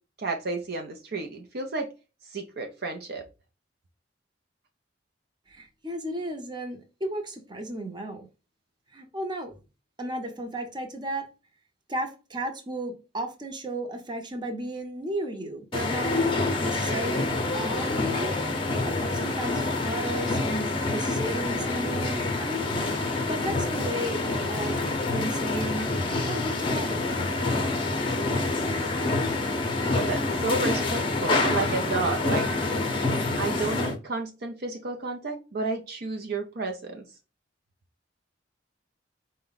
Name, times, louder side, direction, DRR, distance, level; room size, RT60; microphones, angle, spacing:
voice 1, 0.2-1.9 2.3-3.2 29.9-32.5 33.4-37.0, right 3 dB, 55° right, 3 dB, 0.5 m, -31 dB
voice 2, 5.5-8.3 8.9-9.5 10.0-11.3 11.9-16.1 16.6-18.4 18.8-22.7 23.2-24.2 24.5-24.9 25.1-25.9 26.2-27.1, right 1 dB, 25° right, 4 dB, 0.8 m, -34 dB
sound 1, 15.7-34.0, left 2 dB, 30° left, 0.7 m, -27 dB
4.6 x 2.1 x 3.9 m, 0.30 s
head